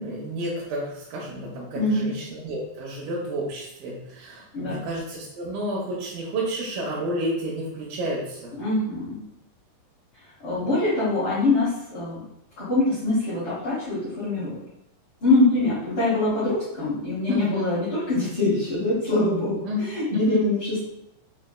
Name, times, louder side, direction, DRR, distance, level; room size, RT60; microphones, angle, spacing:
voice 1, 0.0-8.5 10.5-10.7 17.3-17.7 19.6-20.4, right 1 dB, 85° right, -5 dB, 2.4 m, -31 dB
voice 2, 8.6-9.2 10.4-12.2 12.6-14.6 15.2-19.6 19.9-20.8, left 2 dB, 65° left, -10 dB, 1.2 m, -23 dB
5.7 x 2.6 x 2.2 m, 0.83 s
omnidirectional pair, 4.1 m